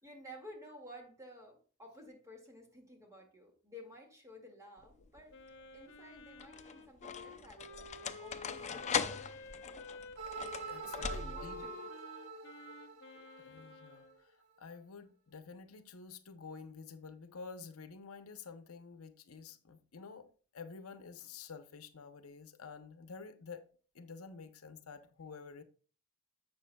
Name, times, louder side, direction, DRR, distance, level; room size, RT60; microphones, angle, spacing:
voice 1, 0.0-9.4 10.9-11.9, equal, 15° right, 2.1 m, -53 dB
sound 1, 4.8-5.3 6.2-11.7, left 6 dB, 35° left, 0.5 m, -40 dB
Wind instrument woodwind instrument, 5.3-14.2, left 3 dB, 55° left, 1.2 m, -51 dB
sound 2, 10.2-14.2, right 5 dB, 75° right, 1.8 m, -46 dB
voice 2, 10.7-11.6 13.2-20.3 20.5-23.6 23.9-25.6, left 5 dB, 70° left, 0.8 m, -50 dB
11.5 x 7.4 x 2.3 m
head